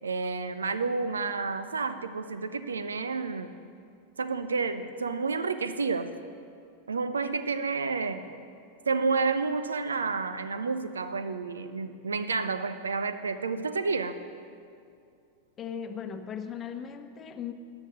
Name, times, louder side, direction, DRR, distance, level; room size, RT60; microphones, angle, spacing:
voice 1, 0.0-3.5 4.2-6.1 6.9-8.3 8.9-14.1, right 4 dB, 70° right, 11 dB, 0.6 m, -30 dB
voice 2, 15.6-17.5, left 7 dB, 25° left, 8 dB, 1.0 m, -37 dB
15.5 x 9.4 x 6.5 m, 2.4 s
figure-of-eight pair, 90°, 0 cm